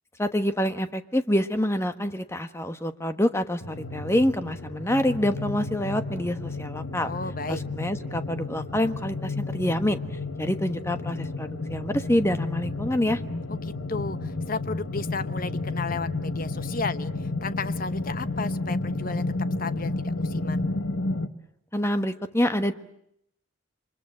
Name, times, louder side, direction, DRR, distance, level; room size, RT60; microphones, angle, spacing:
voice 1, 0.2-7.1 7.5-10.0 10.4-13.2 21.7-22.7, left 1 dB, 15° left, 9 dB, 1.3 m, -26 dB
sound 1, 3.6-21.3, left 2 dB, 75° left, 1.4 m, -32 dB
voice 2, 7.0-7.6 13.5-19.2 19.6-20.6, left 4 dB, 45° left, 12 dB, 1.0 m, -34 dB
29.0 x 25.0 x 7.7 m, 0.75 s
head